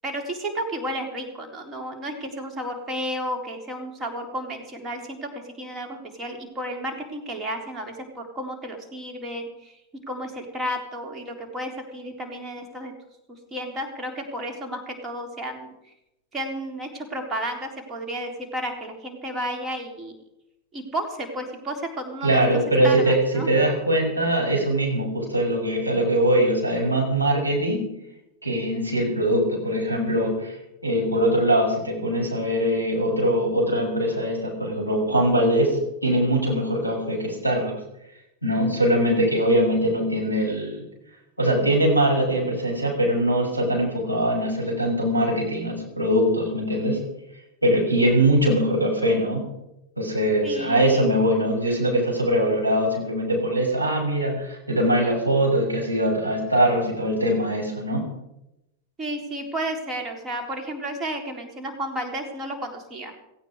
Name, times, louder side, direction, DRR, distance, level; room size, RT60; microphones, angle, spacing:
voice 1, 0.0-9.8 10.1-12.9 13.3-15.9 16.3-20.2 20.7-22.4 22.8-23.5 50.4-51.1 59.0-63.1, right 1 dB, 20° right, 3 dB, 3.9 m, -32 dB
voice 2, 22.2-27.9 28.4-30.6 30.8-37.7 38.4-40.8 41.4-47.0 47.6-49.4 50.0-58.0, right 1 dB, 90° right, -3 dB, 6.5 m, -22 dB
17.5 x 16.0 x 4.9 m, 0.87 s
figure-of-eight pair, 90°, 0 cm